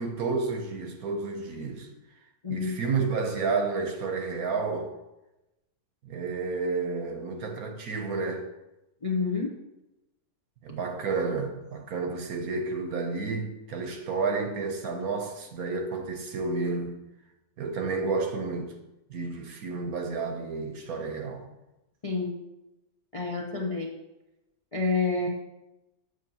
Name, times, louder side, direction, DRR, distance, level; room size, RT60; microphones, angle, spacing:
voice 1, 0.0-1.9 2.5-4.9 6.0-8.5 10.6-17.0 17.6-18.7 19.1-21.5, right 4 dB, 65° right, 1.1 m, -31 dB
voice 2, 9.0-9.5 22.0-22.3 23.1-23.9 24.7-25.3, left 4 dB, 35° left, 0.6 m, -28 dB
8.1 x 7.5 x 2.9 m
omnidirectional pair, 1.9 m